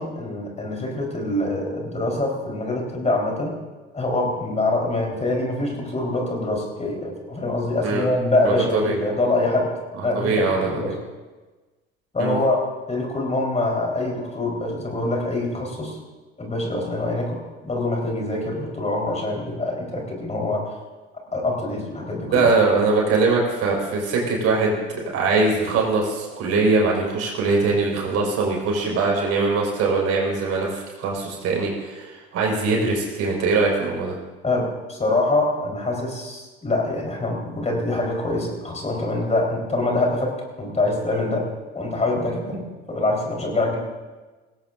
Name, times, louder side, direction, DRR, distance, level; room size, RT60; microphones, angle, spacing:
voice 1, 0.0-3.5 3.9-9.7 10.0-11.0 12.1-12.6 12.9-16.0 16.4-17.4 17.6-20.7 21.3-22.5 34.4-40.3 40.6-41.4 41.7-42.6 42.9-43.8, left 2 dB, 20° left, 0 dB, 4.0 m, -24 dB
voice 2, 8.4-8.9 10.1-10.9 12.2-12.4 22.3-34.1, right 3 dB, 55° right, -1 dB, 4.9 m, -22 dB
19.0 x 16.5 x 2.6 m, 1.2 s
hypercardioid pair, 65°, 30 cm